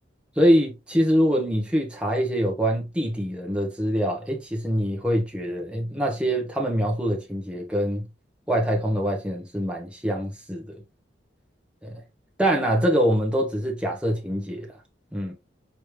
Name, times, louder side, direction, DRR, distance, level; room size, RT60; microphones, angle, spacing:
voice 1, 0.4-8.0 8.5-10.8 11.8-12.0 12.4-14.7 15.1-15.3, equal, 5° right, 1.0 m, -24 dB
4.8 x 3.1 x 3.2 m
head